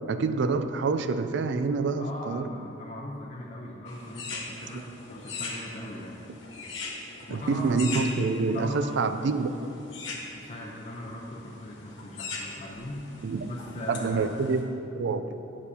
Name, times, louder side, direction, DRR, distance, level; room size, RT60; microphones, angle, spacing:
voice 1, 0.0-2.5 4.7-4.8 7.3-9.6 13.2-13.5 13.7-15.4, right 4 dB, 65° right, 9 dB, 0.4 m, -27 dB
voice 2, 2.0-6.3 7.3-7.7 8.5-8.9 10.3-13.1 13.4-14.3, left 1 dB, 35° left, -4 dB, 0.6 m, -39 dB
sound 1, 3.9-14.6, left 3 dB, 70° left, 1.2 m, -41 dB
10.0 x 6.2 x 2.8 m, 2.9 s
head